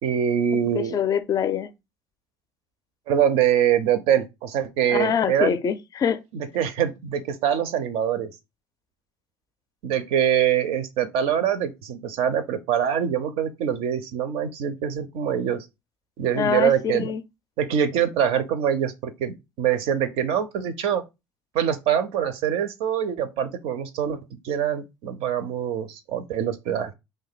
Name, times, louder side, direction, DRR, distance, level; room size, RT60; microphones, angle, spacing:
voice 1, 0.0-1.0 3.1-5.6 6.3-8.3 9.8-15.7 16.2-17.1 17.6-21.0 21.5-24.2 24.4-26.9, right 9 dB, 60° right, 0.4 m, -24 dB
voice 2, 0.7-1.7 4.9-6.2 16.3-17.2, left 8 dB, 35° left, 0.4 m, -24 dB
2.5 x 2.1 x 3.9 m
figure-of-eight pair, 60°, 11 cm